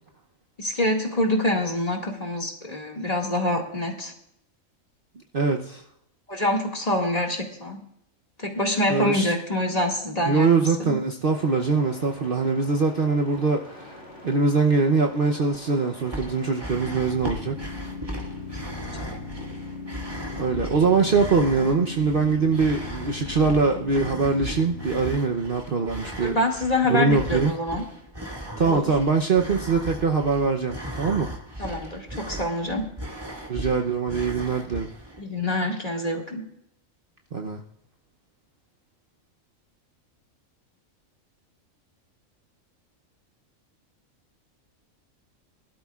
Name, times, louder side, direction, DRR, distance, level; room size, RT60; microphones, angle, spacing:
voice 1, 0.6-4.1 6.3-7.8 8.4-11.0 18.6-19.2 26.2-27.8 28.7-28.9 31.6-32.8 35.2-36.4, left 1 dB, 30° left, 1 dB, 2.0 m, -26 dB
voice 2, 5.3-5.8 8.9-9.3 10.3-17.6 20.3-26.4 26.8-27.5 28.6-31.3 33.5-34.9 37.3-37.6, right 4 dB, 45° right, 2 dB, 0.9 m, -23 dB
sound 1, 11.2-25.0, left 3 dB, 50° left, 2.4 m, -39 dB
sound 2, 16.0-35.2, equal, 20° right, 1.6 m, -37 dB
20.5 x 12.0 x 2.4 m, 0.75 s
omnidirectional pair, 1.4 m